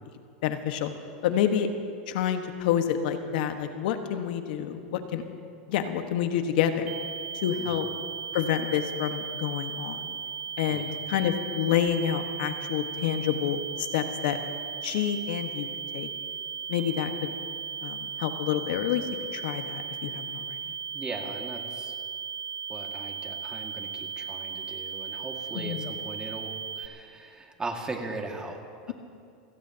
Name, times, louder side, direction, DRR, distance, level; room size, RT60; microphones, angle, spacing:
voice 1, 0.4-0.9 1.2-1.7 2.1-5.2 5.7-6.9 7.4-7.8 8.3-10.1 10.6-14.4 14.8-15.7 15.9-16.1 16.7-17.3 17.8-19.0 19.3-20.6 25.5-25.9, left 9 dB, 70° left, 7 dB, 1.4 m, -28 dB
sound 1, 6.9-26.9, right 7 dB, 60° right, 0.8 m, -36 dB
voice 2, 20.9-22.0 22.7-28.9, right 3 dB, 15° right, 2 dB, 2.1 m, -39 dB
28.0 x 17.0 x 2.9 m, 2.5 s
hypercardioid pair, 120°, 5 cm